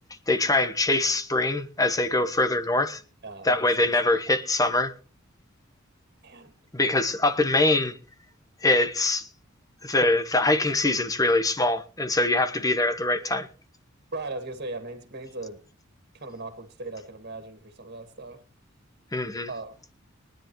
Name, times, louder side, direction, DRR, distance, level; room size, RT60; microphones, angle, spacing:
voice 1, 0.3-3.0 3.4-4.9 6.7-7.9 8.6-9.3 9.8-13.5 19.1-19.5, left 2 dB, 15° left, 1.1 m, -23 dB
voice 2, 3.2-3.9 6.2-6.5 14.1-15.6 16.1-18.4 19.5-19.8, right 2 dB, 50° right, 2.1 m, -38 dB
22.5 x 10.5 x 3.1 m
head